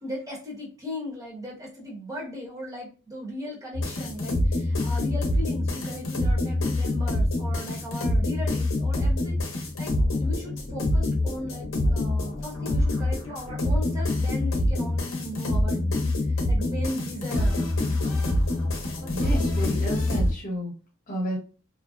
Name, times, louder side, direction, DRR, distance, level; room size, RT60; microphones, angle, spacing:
voice 1, 0.0-9.9 10.2-18.0 19.0-19.5, equal, 15° right, -4 dB, 1.0 m, -37 dB
sound 1, 3.7-20.3, left 1 dB, 70° left, 0.6 m, -25 dB
voice 2, 19.0-20.7 21.1-21.4, equal, 40° left, -1 dB, 0.9 m, -31 dB
2.5 x 2.0 x 2.4 m, 0.37 s
head